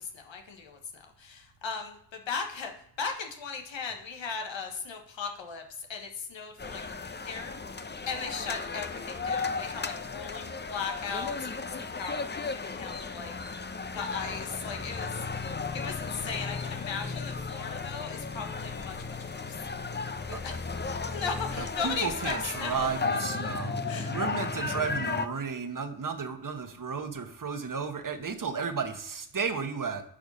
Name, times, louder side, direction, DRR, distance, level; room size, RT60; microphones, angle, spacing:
voice 1, 0.0-2.7 3.0-7.5 8.1-13.3 13.9-19.6 20.3-23.1 23.9-24.1, left 5 dB, 85° left, 4 dB, 1.3 m, -37 dB
sound 1, 6.6-25.3, left 4 dB, 25° left, 0.7 m, -35 dB
voice 2, 21.6-23.8 24.1-30.0, right 5 dB, 45° right, 7 dB, 1.3 m, -33 dB
8.8 x 4.9 x 5.5 m, 0.72 s
cardioid pair, 40°, 44 cm